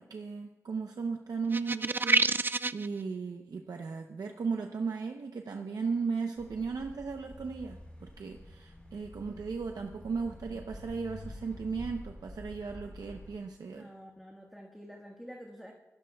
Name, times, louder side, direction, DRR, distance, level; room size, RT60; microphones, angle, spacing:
voice 1, 0.0-13.9, right 5 dB, 90° right, 3 dB, 0.8 m, -36 dB
sound 1, 1.5-2.9, right 3 dB, 35° right, 0.4 m, -27 dB
sound 2, 6.4-13.3, left 1 dB, 20° left, 4.0 m, -48 dB
voice 2, 13.7-15.7, equal, ahead, 0 dB, 1.5 m, -48 dB
25.0 x 14.0 x 2.3 m, 1.1 s
wide cardioid pair, 90°, 6 cm